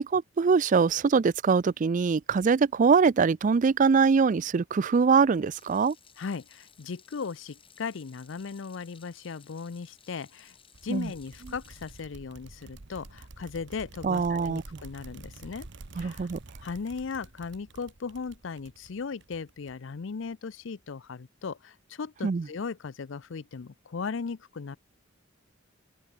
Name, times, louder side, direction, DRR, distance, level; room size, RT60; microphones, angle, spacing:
voice 1, 0.0-5.9 10.9-11.1 14.0-14.6 16.0-16.4 22.2-22.5, right 5 dB, 40° right, 0.4 m, -23 dB
Water tap faucet / Sink (filling or washing), 5.5-12.0, left 7 dB, 25° left, 4.8 m, -58 dB
voice 2, 6.2-10.6 10.8-15.7 15.9-16.3 16.6-24.8, left 5 dB, 65° left, 0.5 m, -37 dB
sound 1, 10.7-20.0, right 2 dB, 65° right, 1.2 m, -48 dB
open air
head